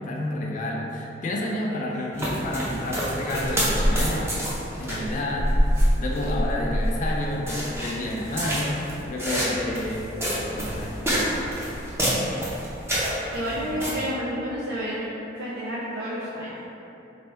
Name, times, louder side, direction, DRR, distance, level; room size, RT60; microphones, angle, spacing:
voice 1, 0.0-4.4 4.8-5.6 6.0-10.1 10.4-11.0 13.5-13.8, left 1 dB, 40° left, -1 dB, 0.4 m, -30 dB
sound 1, 2.1-13.9, equal, 15° right, 0.6 m, -27 dB
voice 2, 13.3-15.1 15.4-16.6, equal, 60° right, -8 dB, 0.5 m, -30 dB
3.3 x 2.6 x 4.3 m, 2.9 s
head